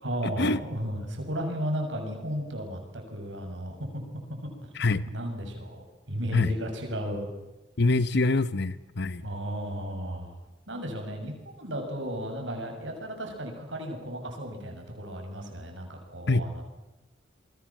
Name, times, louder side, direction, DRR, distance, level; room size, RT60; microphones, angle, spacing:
voice 1, 0.0-4.7 5.0-7.3 9.2-10.4 10.7-16.6, equal, 75° right, 3 dB, 7.3 m, -34 dB
voice 2, 7.8-9.2 16.3-16.4, left 2 dB, 60° left, 16 dB, 1.0 m, -24 dB
29.0 x 22.0 x 7.4 m, 1.1 s
head